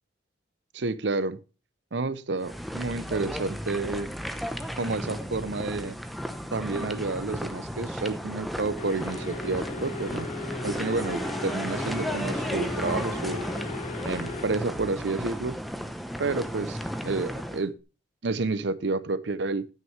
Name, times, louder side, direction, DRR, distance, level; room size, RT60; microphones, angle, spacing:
voice 1, 0.7-1.4 1.9-4.1 4.8-6.0 6.5-10.3 10.6-13.4 14.0-15.6 16.2-16.8 17.0-17.8 18.2-19.7, right 3 dB, 65° right, 0.7 m, -30 dB
sound 1, 2.4-17.6, equal, ahead, 0.8 m, -34 dB
sound 2, 8.8-14.5, left 4 dB, 40° left, 1.0 m, -38 dB
11.0 x 9.6 x 3.2 m
head